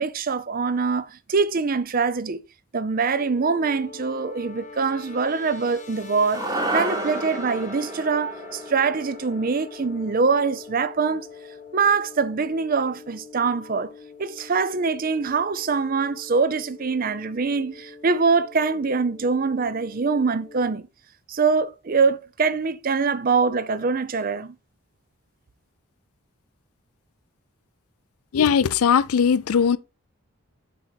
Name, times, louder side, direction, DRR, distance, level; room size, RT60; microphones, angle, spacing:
voice 1, 0.0-2.4 2.7-6.4 6.7-11.3 11.7-13.9 14.2-20.9 21.3-24.6, right 4 dB, 40° right, 0.5 m, -23 dB
sound 1, 3.1-20.7, left 4 dB, 30° left, 1.1 m, -43 dB
sound 2, 6.3-10.8, right 2 dB, 15° right, 0.9 m, -31 dB
voice 2, 28.3-29.8, left 7 dB, 75° left, 0.4 m, -19 dB
7.5 x 4.1 x 4.0 m
head